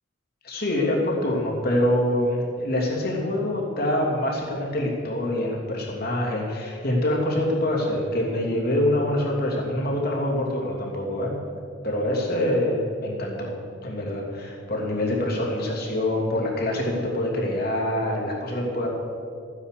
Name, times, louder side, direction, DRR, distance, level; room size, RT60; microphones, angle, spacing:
voice 1, 0.4-11.3 11.8-13.5 13.8-18.9, left 1 dB, 50° left, -2 dB, 2.9 m, -25 dB
14.5 x 9.9 x 6.8 m, 2.4 s
head